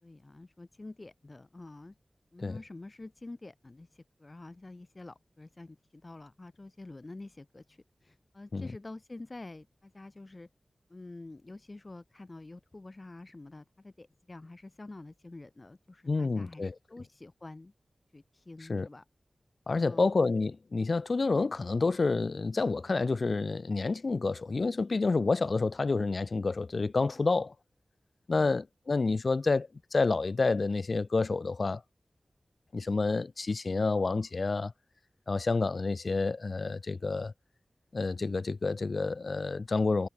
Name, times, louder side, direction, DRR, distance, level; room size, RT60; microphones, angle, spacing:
voice 1, 0.0-2.0 2.3-10.5 10.9-17.7 18.1-19.0 19.8-20.2, left 2 dB, 40° left, 3.4 m, -48 dB
voice 2, 16.1-16.7 18.7-18.9 19.7-27.5 28.3-31.8 32.7-34.7 35.3-37.3 37.9-40.1, left 3 dB, 60° left, 0.4 m, -29 dB
wide cardioid pair, 60°, 0 cm